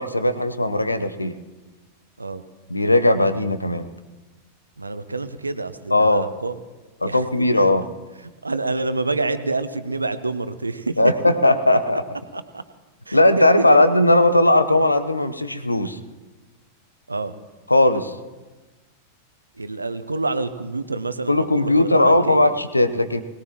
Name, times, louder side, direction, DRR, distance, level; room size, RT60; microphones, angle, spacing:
voice 1, 0.0-1.4 2.7-3.9 5.9-6.3 7.0-7.8 11.0-12.0 13.1-16.0 17.7-18.1 21.3-23.2, left 1 dB, 85° left, 12 dB, 0.8 m, -18 dB
voice 2, 4.8-6.6 7.0-7.7 8.4-11.3 12.3-12.6 13.1-13.7 17.1-17.3 19.6-22.4, right 3 dB, 80° right, 12 dB, 0.9 m, -27 dB
21.5 x 19.0 x 3.0 m, 1.2 s
figure-of-eight pair, 90°, 0 cm